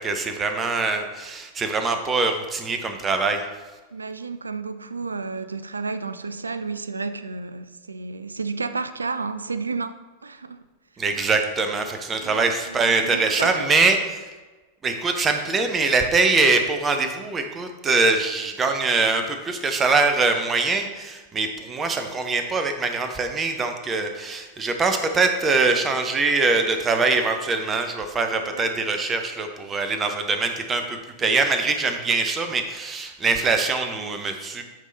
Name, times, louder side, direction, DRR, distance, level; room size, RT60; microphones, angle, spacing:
voice 1, 0.0-3.5 11.0-14.3 14.8-34.6, right 3 dB, 20° right, 0.7 m, -23 dB
voice 2, 3.9-10.7 12.1-13.7 28.5-28.7, right 4 dB, 75° right, 0.3 m, -32 dB
9.1 x 3.8 x 3.9 m
figure-of-eight pair, 90°, 0 cm